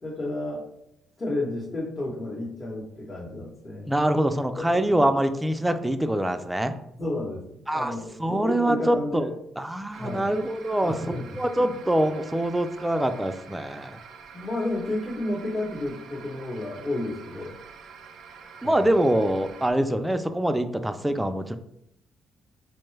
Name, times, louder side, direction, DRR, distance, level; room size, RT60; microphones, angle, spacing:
voice 1, 0.0-0.7 1.2-3.9 7.0-9.3 10.0-10.4 10.8-11.7 14.3-17.5 18.6-18.8 21.1-21.2, left 1 dB, 35° left, -5 dB, 0.9 m, -31 dB
voice 2, 3.9-6.7 7.7-7.9 8.2-14.0 18.6-21.6, right 1 dB, 10° right, 8 dB, 0.3 m, -25 dB
sound 1, 9.9-19.7, right 6 dB, 75° right, 0.4 m, -47 dB
4.5 x 2.2 x 3.2 m, 0.76 s
cardioid pair, 90°, 0 cm